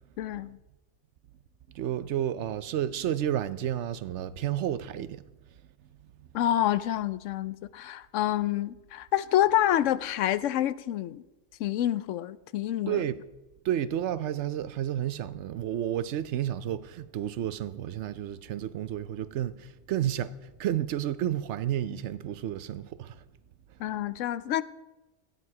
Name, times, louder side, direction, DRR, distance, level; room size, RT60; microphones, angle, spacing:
voice 1, 0.2-0.6 6.3-11.2 11.6-13.0 23.8-24.6, left 12 dB, 85° left, 0.9 m, -27 dB
voice 2, 1.7-5.2 12.9-13.2 13.6-23.2, right 11 dB, 75° right, 0.9 m, -31 dB
13.5 x 9.5 x 4.7 m
omnidirectional pair, 1.2 m